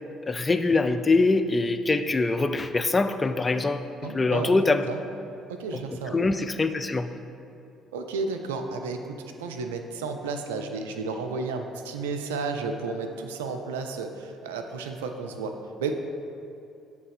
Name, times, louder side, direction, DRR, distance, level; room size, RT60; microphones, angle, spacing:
voice 1, 0.3-4.8 5.7-5.8 6.1-7.1, left 3 dB, 25° left, 9 dB, 0.4 m, -24 dB
voice 2, 4.0-4.6 4.9-5.0 5.5-6.2 7.9-15.9, right 4 dB, 80° right, 5 dB, 0.4 m, -32 dB
7.9 x 3.3 x 4.9 m, 2.7 s
hypercardioid pair, 50°, 0 cm